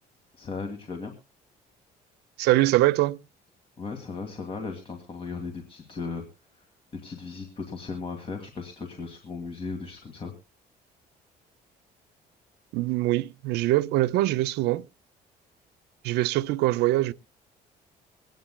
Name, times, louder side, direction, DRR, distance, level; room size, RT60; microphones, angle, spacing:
voice 1, 0.4-1.1 3.8-6.2 6.9-10.3, left 4 dB, 35° left, 1.9 m, -36 dB
voice 2, 2.4-3.2 12.7-14.9 16.0-17.1, right 16 dB, 85° right, 0.5 m, -23 dB
24.0 x 9.3 x 2.2 m
cardioid pair, 110°, 17 cm